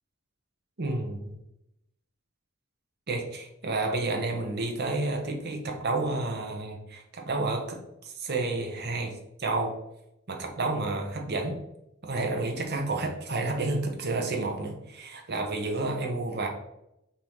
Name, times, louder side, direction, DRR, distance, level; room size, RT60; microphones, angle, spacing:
voice 1, 0.8-1.3 3.1-7.8 8.0-9.1 9.4-9.7 10.3-11.6 12.0-16.5, right 2 dB, 50° right, 2 dB, 0.8 m, -30 dB
5.4 x 2.7 x 3.1 m, 0.84 s
head